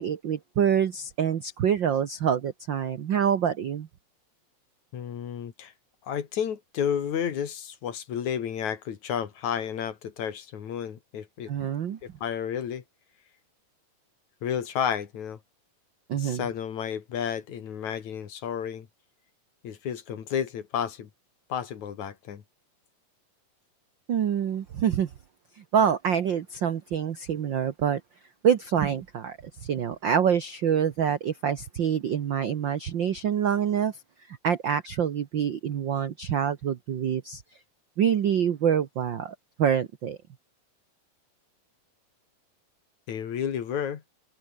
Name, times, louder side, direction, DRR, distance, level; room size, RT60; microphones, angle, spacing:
voice 1, 0.0-3.9 11.5-12.0 16.1-16.5 24.1-25.1 25.6-28.0 28.4-34.0 34.3-37.4 38.0-40.2, right 8 dB, 70° right, 1.1 m, -26 dB
voice 2, 4.9-5.7 6.0-11.5 12.0-12.8 14.4-15.4 16.1-18.9 19.6-21.1 21.5-22.4 43.1-44.0, left 8 dB, 65° left, 3.3 m, -31 dB
omnidirectional pair, 3.7 m